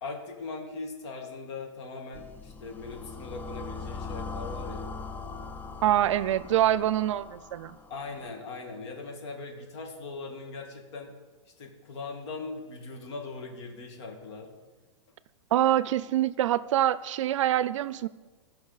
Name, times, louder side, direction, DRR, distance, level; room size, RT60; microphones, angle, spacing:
voice 1, 0.0-4.9 7.9-11.1 11.6-14.5, left 3 dB, 60° left, 3 dB, 1.9 m, -40 dB
sound 1, 2.1-8.3, left 4 dB, 10° left, 0.3 m, -40 dB
voice 2, 5.8-7.8 15.5-18.1, right 12 dB, 75° right, 17 dB, 0.4 m, -25 dB
15.5 x 5.6 x 4.0 m, 1.3 s
hypercardioid pair, 135°, 16 cm